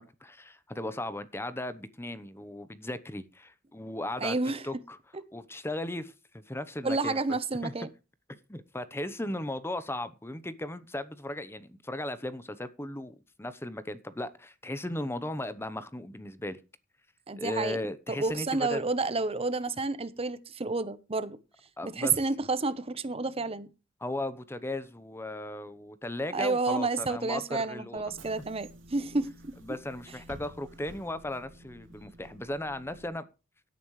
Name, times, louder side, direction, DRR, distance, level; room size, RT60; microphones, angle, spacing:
voice 1, 0.0-4.4 4.6-5.0 5.3-7.2 7.6-7.7 8.5-13.1 13.4-16.6 17.4-18.8 21.8-22.1 24.0-28.0 29.6-33.3, left 1 dB, 15° left, 0.9 m, -36 dB
voice 2, 4.2-4.6 6.8-7.9 17.3-17.8 18.1-21.4 21.8-23.7 26.3-29.5, right 3 dB, 30° right, 0.9 m, -30 dB
Bus / Engine, 28.0-33.1, right 1 dB, 75° right, 2.7 m, -51 dB
17.5 x 9.4 x 3.2 m
head